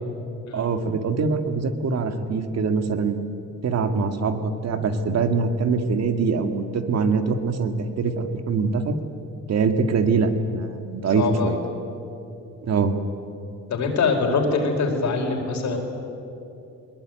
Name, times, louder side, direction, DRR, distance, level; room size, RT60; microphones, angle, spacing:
voice 1, 0.5-3.2 3.6-9.0 9.5-11.6 12.7-13.0, right 4 dB, 60° right, 8 dB, 2.1 m, -23 dB
voice 2, 11.1-11.5 13.7-15.8, left 4 dB, 70° left, 2 dB, 4.9 m, -23 dB
21.0 x 21.0 x 9.3 m, 2.7 s
cardioid pair, 90°, 30 cm